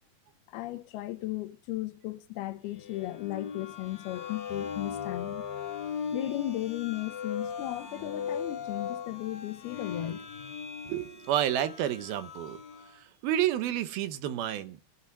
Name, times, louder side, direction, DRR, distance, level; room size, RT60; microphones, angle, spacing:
voice 1, 0.5-5.5 6.1-10.5, left 16 dB, 80° left, 2.7 m, -36 dB
sound 1, 2.8-13.0, left 7 dB, 50° left, 3.4 m, -38 dB
sound 2, 4.5-7.7, left 2 dB, 15° right, 0.8 m, -54 dB
voice 2, 10.8-12.6 12.9-14.8, right 11 dB, 75° right, 2.8 m, -30 dB
17.5 x 8.0 x 7.2 m
omnidirectional pair, 4.7 m